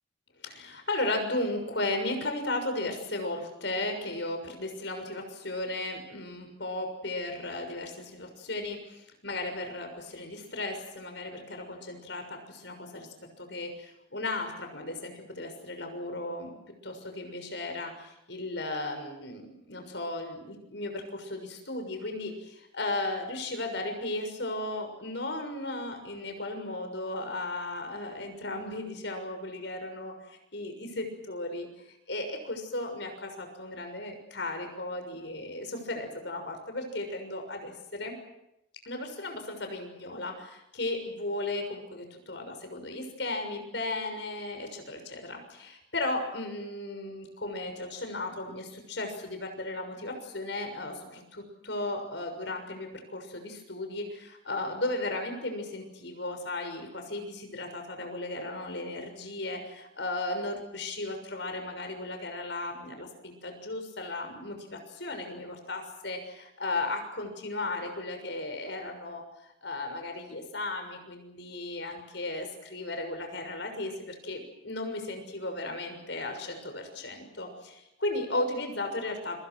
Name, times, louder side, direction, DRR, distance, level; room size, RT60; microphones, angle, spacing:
voice 1, 0.4-13.1 13.4-16.5 16.8-38.1 38.8-69.2 69.6-79.4, left 2 dB, 70° left, 5 dB, 6.5 m, -35 dB
29.5 x 25.0 x 6.4 m, 0.85 s
head